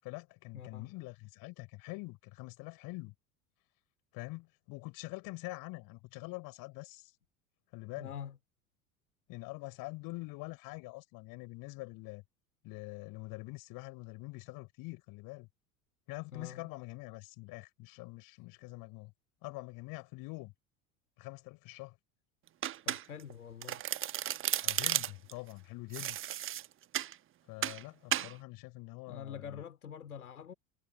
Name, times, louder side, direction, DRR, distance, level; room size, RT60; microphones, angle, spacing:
voice 1, 0.0-3.1 4.1-7.1 7.7-8.1 9.3-12.2 12.6-15.5 16.1-19.1 19.4-20.5 21.2-21.9 24.6-26.2 27.5-29.6, left 23 dB, 50° left, 6.2 m, -45 dB
voice 2, 0.5-0.9 7.9-8.4 16.3-16.7 22.8-23.8 28.1-28.4 29.1-30.5, left 8 dB, 75° left, 3.4 m, -46 dB
Domestic sounds home sounds, 22.6-23.3 23.6-25.3 25.9-27.1 27.6-27.8 28.1-28.3, right 12 dB, 30° right, 1.1 m, -34 dB
figure-of-eight pair, 75°, 44 cm